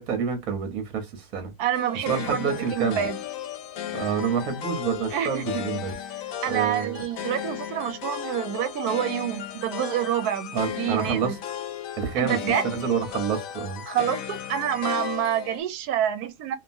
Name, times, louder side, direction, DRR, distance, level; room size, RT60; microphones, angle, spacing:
voice 1, 0.0-1.5 2.1-3.0 3.9-5.9 6.5-7.0 10.5-11.4 12.0-12.4 12.7-13.8, right 7 dB, 70° right, 1.3 m, -28 dB
voice 2, 1.6-3.2 5.1-5.6 6.4-11.4 12.2-12.6 13.9-16.6, right 10 dB, 90° right, 1.1 m, -27 dB
sound 1, 1.7-15.6, left 10 dB, 70° left, 0.9 m, -35 dB
2.9 x 2.4 x 2.5 m
omnidirectional pair, 1.6 m